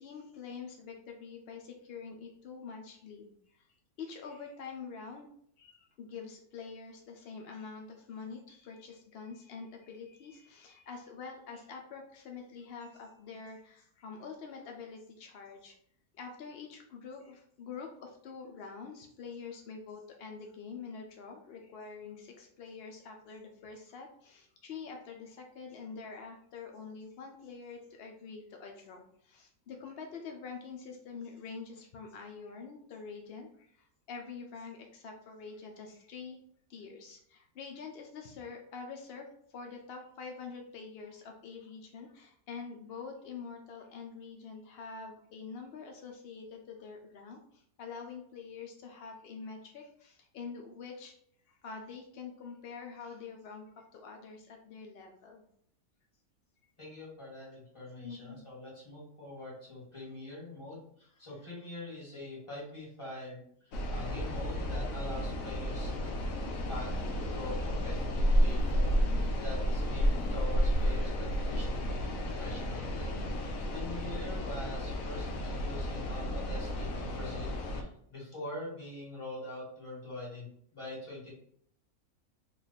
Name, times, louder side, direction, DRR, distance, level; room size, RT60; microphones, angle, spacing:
voice 1, 0.0-3.7 4.0-5.3 5.6-15.8 16.1-36.4 36.7-51.1 51.5-55.4 58.0-58.4, left 5 dB, 85° left, 3 dB, 0.5 m, -46 dB
voice 2, 56.8-66.1 66.7-81.3, left 2 dB, 20° left, -6 dB, 1.5 m, -44 dB
sound 1, 63.7-77.8, equal, 70° left, 0.9 m, -31 dB
3.1 x 2.4 x 3.9 m, 0.66 s
omnidirectional pair, 1.6 m